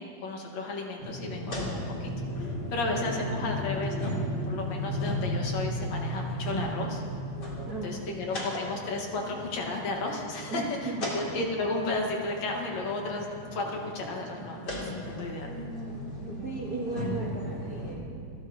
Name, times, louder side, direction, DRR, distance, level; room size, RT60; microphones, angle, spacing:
voice 1, 0.0-2.1 2.4-4.2 4.5-7.0 7.8-15.5, left 2 dB, 60° left, 0 dB, 2.5 m, -33 dB
sound 1, 1.0-17.9, equal, 35° left, 2.8 m, -35 dB
voice 2, 2.9-3.6 7.7-8.5 10.5-11.2 16.2-18.3, right 3 dB, 50° right, -3 dB, 1.1 m, -37 dB
28.0 x 13.0 x 2.8 m, 2.3 s
omnidirectional pair, 3.8 m